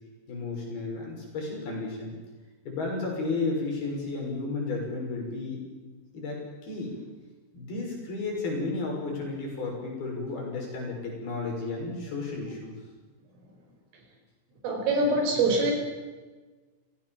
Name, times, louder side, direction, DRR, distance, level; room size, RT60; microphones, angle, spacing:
voice 1, 0.3-2.2 2.7-5.8 6.1-7.0 7.5-12.7, left 3 dB, 50° left, 0 dB, 8.2 m, -33 dB
voice 2, 14.6-15.7, right 2 dB, 90° right, 2 dB, 7.6 m, -24 dB
29.0 x 17.0 x 7.5 m, 1.3 s
omnidirectional pair, 5.6 m